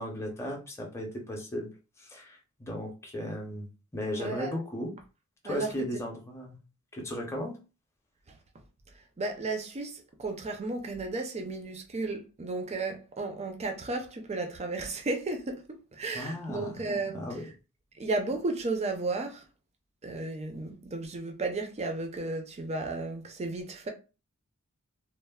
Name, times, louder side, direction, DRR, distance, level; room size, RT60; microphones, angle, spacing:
voice 1, 0.0-1.7 2.0-3.7 3.9-4.9 5.4-6.6 6.9-7.6 16.1-16.8 17.1-17.4, equal, 10° left, 0.6 m, -36 dB
voice 2, 4.2-4.6 5.4-5.8 8.3-8.4 8.9-17.3 17.9-19.4 20.0-23.9, right 3 dB, 30° right, 0.5 m, -34 dB
3.1 x 2.1 x 2.2 m
head